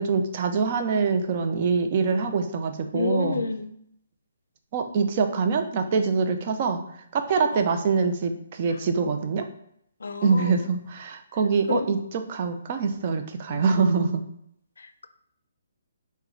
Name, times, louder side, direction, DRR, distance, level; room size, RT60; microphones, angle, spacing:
voice 1, 0.0-3.4 4.7-6.8 7.1-9.5 10.2-14.2, right 5 dB, 35° right, 6 dB, 0.4 m, -24 dB
voice 2, 2.9-3.7 10.0-10.5 11.7-11.9 13.5-13.9, left 4 dB, 85° left, 10 dB, 0.4 m, -29 dB
3.8 x 2.1 x 4.3 m, 0.72 s
hypercardioid pair, 165°, 0 cm